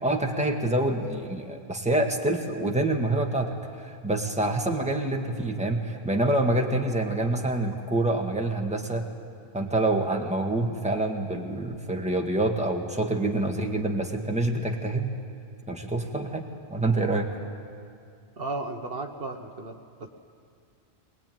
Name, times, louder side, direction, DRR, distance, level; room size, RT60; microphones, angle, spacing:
voice 1, 0.0-9.0 9.5-15.1 15.7-17.4, right 2 dB, 5° right, 2 dB, 1.7 m, -26 dB
voice 2, 18.4-20.1, right 2 dB, 60° right, 4 dB, 1.4 m, -35 dB
21.5 x 21.0 x 9.2 m, 2.4 s
omnidirectional pair, 1.1 m